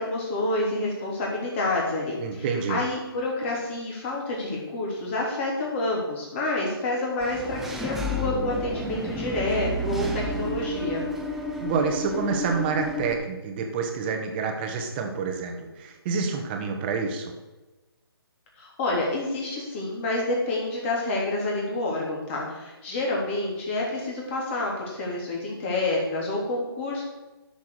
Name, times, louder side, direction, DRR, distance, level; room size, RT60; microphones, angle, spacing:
voice 1, 0.0-11.0 18.6-27.0, left 2 dB, 30° left, -3 dB, 3.4 m, -28 dB
voice 2, 2.2-2.8 11.6-17.3, right 5 dB, 25° right, 4 dB, 1.5 m, -28 dB
Engine / Mechanisms, 7.2-13.1, equal, ahead, 0.6 m, -31 dB
12.0 x 7.1 x 5.0 m, 1.1 s
figure-of-eight pair, 150°, 13 cm